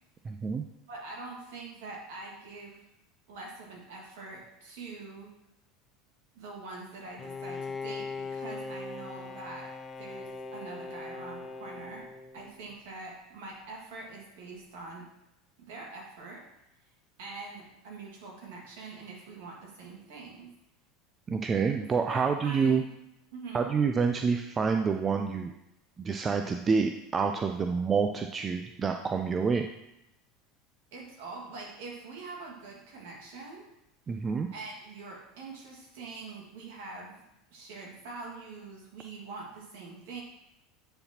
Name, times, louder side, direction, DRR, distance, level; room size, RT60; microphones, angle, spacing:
voice 1, 0.2-0.6 21.3-22.8 23.5-25.5 26.0-29.7 34.1-34.5, right 5 dB, 30° right, 5 dB, 0.5 m, -28 dB
voice 2, 0.9-2.9 3.3-5.3 6.3-12.1 12.3-15.1 15.6-16.5 17.2-20.5 21.8-22.8 23.3-23.7 30.9-33.7 34.5-37.2 37.5-40.2, right 3 dB, 65° right, -1 dB, 1.8 m, -44 dB
Bowed string instrument, 7.2-12.8, left 4 dB, 25° left, 0.6 m, -40 dB
9.7 x 4.1 x 2.9 m, 0.87 s
hypercardioid pair, 75°, 0 cm